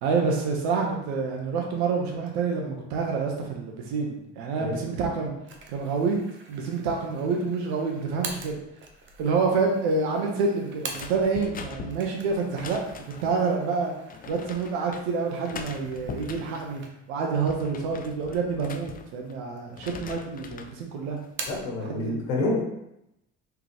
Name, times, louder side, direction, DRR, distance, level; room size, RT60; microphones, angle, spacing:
voice 1, 0.0-5.3 5.7-6.2 6.5-8.6 9.2-12.8 13.2-13.9 14.3-21.2 21.8-22.2, right 4 dB, 80° right, 1 dB, 1.0 m, -27 dB
sound 1, 5.5-11.5 11.8-17.3 17.7-17.8 18.6-19.3 19.6-20.4 20.7-21.8, right 4 dB, 35° right, 0.8 m, -44 dB
sound 2, 10.9-13.4 14.1-15.0 15.4-16.7 17.2-19.4 19.7-20.8 21.2-21.6, left 5 dB, 30° left, 0.4 m, -42 dB
voice 2, 21.5-22.6, left 2 dB, 80° left, -2 dB, 1.4 m, -28 dB
3.8 x 3.5 x 3.0 m, 0.84 s
hypercardioid pair, 70°, 32 cm